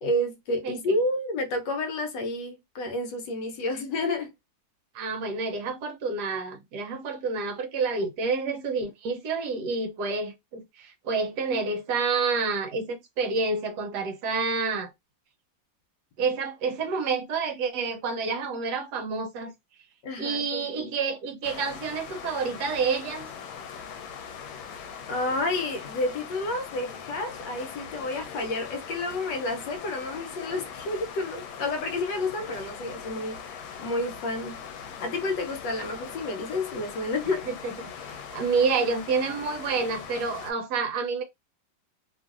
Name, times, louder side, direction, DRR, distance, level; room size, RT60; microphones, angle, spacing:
voice 1, 0.0-4.3 20.0-20.9 25.1-37.5, left 2 dB, 70° left, 1.3 m, -30 dB
voice 2, 4.9-14.9 16.2-19.5 20.2-23.3 37.5-41.2, right 4 dB, 70° right, 1.1 m, -29 dB
sound 1, 21.4-40.5, left 7 dB, 90° left, 1.3 m, -41 dB
3.1 x 2.5 x 2.4 m
omnidirectional pair, 2.1 m